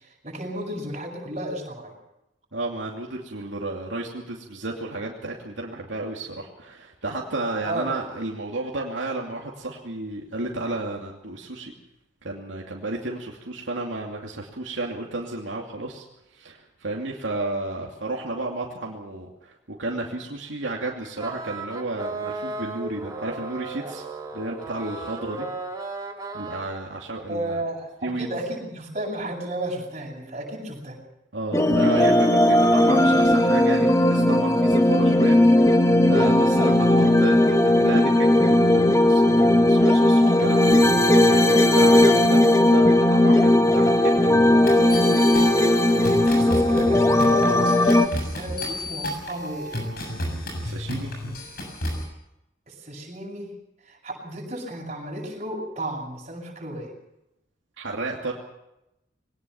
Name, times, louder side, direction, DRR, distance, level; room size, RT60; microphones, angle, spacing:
voice 1, 0.2-1.9 7.6-7.9 27.2-31.0 45.9-48.1 48.3-49.8 52.7-53.5 53.8-56.9, right 1 dB, 35° right, -1 dB, 8.0 m, -33 dB
voice 2, 2.5-11.7 12.2-16.0 16.3-24.0 24.3-25.4 26.3-27.6 28.0-28.3 31.3-42.4 42.7-45.0 50.6-51.1 57.8-58.3, right 2 dB, 80° right, -1 dB, 2.7 m, -32 dB
sound 1, 21.2-26.6, right 3 dB, 20° right, 2.6 m, -35 dB
sound 2, 31.5-48.1, left 1 dB, 15° left, 1.3 m, -17 dB
sound 3, 44.7-52.0, left 1 dB, 50° left, 7.1 m, -32 dB
22.5 x 19.0 x 7.1 m, 0.89 s
head